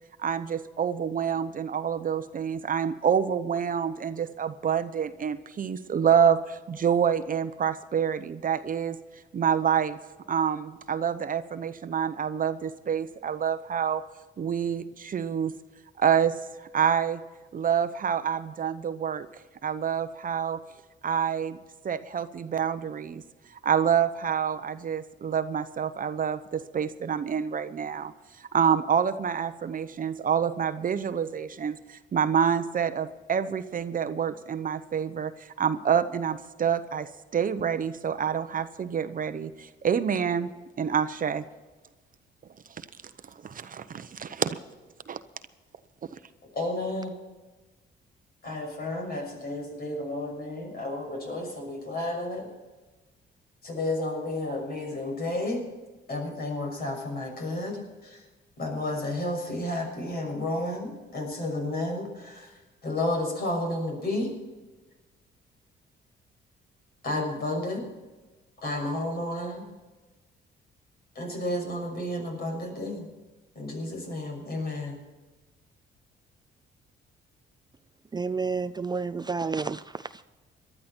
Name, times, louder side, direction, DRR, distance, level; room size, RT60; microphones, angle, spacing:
voice 1, 0.2-9.0 9.3-10.0 10.3-14.0 14.4-15.5 16.0-17.2 17.5-19.3 19.6-20.6 21.0-21.6 21.8-23.2 23.6-28.1 28.4-40.5 40.8-41.4 42.8-42.9 43.4-44.6 45.1-45.2, right 8 dB, 45° right, 12 dB, 0.8 m, -27 dB
voice 2, 46.5-47.2 48.4-52.5 53.6-55.6 56.1-58.2 58.6-64.3 67.0-67.8 68.6-69.7 71.1-73.1 73.5-75.0, left 1 dB, 50° left, 2 dB, 6.3 m, -32 dB
voice 3, 78.1-80.2, right 4 dB, 20° right, 12 dB, 0.4 m, -30 dB
19.0 x 12.0 x 4.5 m, 1.2 s
cardioid pair, 90°, 20 cm